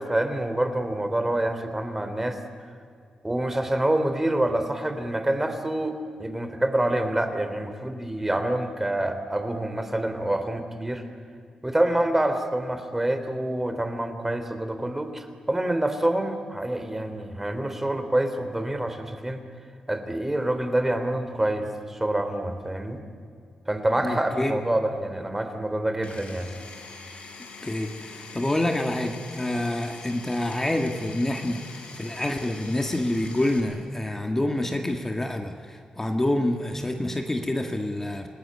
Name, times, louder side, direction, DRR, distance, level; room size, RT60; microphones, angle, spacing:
voice 1, 0.0-2.4 3.2-11.0 11.6-19.4 19.9-23.0 23.7-26.6, right 1 dB, 15° right, 8 dB, 3.2 m, -27 dB
voice 2, 24.0-24.6 27.6-38.3, left 1 dB, 20° left, 4 dB, 2.0 m, -27 dB
Power tool, 26.0-33.6, left 4 dB, 65° left, 6.9 m, -43 dB
27.5 x 19.0 x 9.8 m, 2.3 s
cardioid pair, 85°, 2 cm